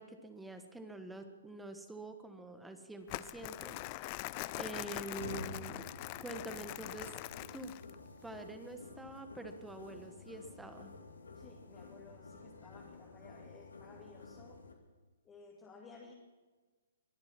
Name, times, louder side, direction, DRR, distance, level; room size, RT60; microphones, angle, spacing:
voice 1, 0.0-5.9 6.2-7.7 8.2-10.9, right 2 dB, 5° right, 7 dB, 1.3 m, -47 dB
Crumpling crinkling, 3.1-8.0, left 20 dB, 35° left, 0.4 m, -43 dB
sound 1, 4.5-14.7, left 3 dB, 90° left, 2.3 m, -50 dB
voice 2, 11.3-14.6 15.2-16.1, left 4 dB, 20° left, -2 dB, 2.3 m, -56 dB
23.0 x 8.7 x 5.9 m, 1.3 s
hypercardioid pair, 140°, 0 cm